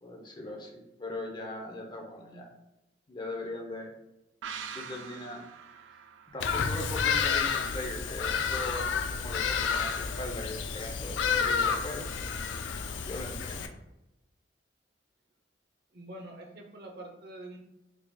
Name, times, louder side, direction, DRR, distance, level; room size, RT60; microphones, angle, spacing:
voice 1, 0.0-2.5 3.1-3.9 4.7-5.4 6.3-12.0 13.0-13.7, left 2 dB, 25° left, 0 dB, 0.7 m, -40 dB
sound 1, 4.4-7.9 8.2-8.3, right 7 dB, 85° right, 0.4 m, -45 dB
Bird vocalization bird call bird song, 6.4-13.7, left 6 dB, 75° left, 0.4 m, -30 dB
voice 2, 15.9-17.6, right 1 dB, 60° right, 2 dB, 0.7 m, -45 dB
4.6 x 2.8 x 2.3 m, 0.92 s
head